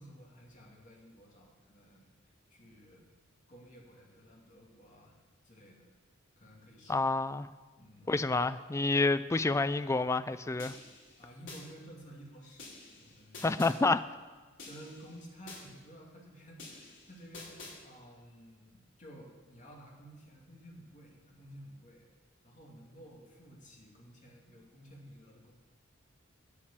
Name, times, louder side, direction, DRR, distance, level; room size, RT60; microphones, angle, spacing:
voice 1, 0.0-3.1 3.5-5.2 5.4-5.9 6.4-7.2 7.8-8.4 11.2-13.6 14.6-22.1 22.4-25.5, equal, 40° left, 2.5 m, -53 dB
voice 2, 6.9-7.5 8.1-10.7 13.4-14.1, left 3 dB, 15° left, 0.3 m, -28 dB
sound 1, 10.6-11.6 12.6-13.7 14.6-15.6 16.6-17.7, left 3 dB, 65° left, 4.4 m, -49 dB
9.8 x 8.7 x 7.4 m
head